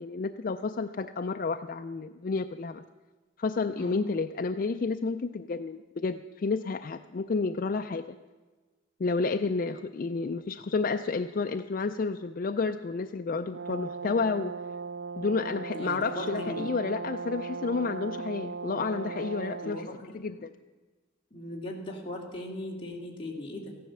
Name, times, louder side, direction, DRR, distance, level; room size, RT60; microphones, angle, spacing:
voice 1, 0.0-2.8 3.4-8.2 9.0-14.5 15.2-19.9 20.1-20.5, left 4 dB, 45° left, 7 dB, 0.3 m, -30 dB
Brass instrument, 13.5-19.8, right 5 dB, 65° right, 0.5 m, -37 dB
voice 2, 15.7-16.7 19.6-20.1 21.3-23.8, left 1 dB, 25° left, -2 dB, 2.2 m, -38 dB
14.5 x 10.5 x 6.8 m, 1.3 s
head